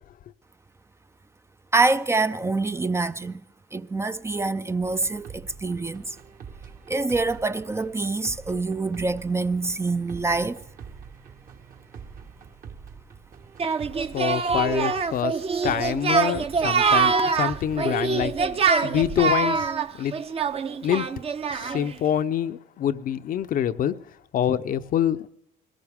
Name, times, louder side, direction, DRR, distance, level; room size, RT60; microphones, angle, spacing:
voice 1, 1.7-3.4 3.7-6.2 6.9-10.6, right 3 dB, 15° right, 0.5 m, -25 dB
sound 1, 4.8-18.7, right 6 dB, 55° right, 1.7 m, -45 dB
Singing, 13.6-21.9, right 5 dB, 35° right, 0.8 m, -24 dB
voice 2, 14.1-15.3 15.6-18.3 18.8-19.7 20.0-20.1 20.8-21.1 21.5-24.0 24.3-25.3, left 10 dB, 55° left, 0.7 m, -25 dB
21.5 x 18.0 x 3.6 m
cardioid pair, 110°, 17 cm